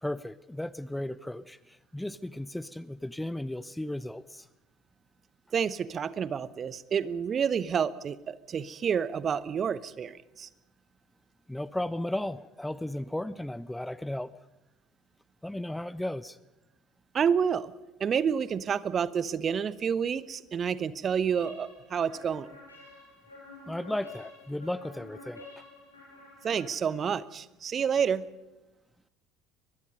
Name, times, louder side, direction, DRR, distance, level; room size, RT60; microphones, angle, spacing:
voice 1, 0.0-4.5 11.5-14.3 15.4-16.4 23.7-25.5, left 1 dB, 5° left, 18 dB, 0.6 m, -35 dB
voice 2, 5.5-10.5 17.1-17.7 18.0-22.5 26.4-28.3, right 7 dB, 35° right, 18 dB, 0.9 m, -29 dB
sound 1, 21.4-27.2, left 2 dB, 80° left, 8.0 m, -50 dB
23.0 x 21.5 x 5.4 m, 1.0 s
figure-of-eight pair, 60°, 0 cm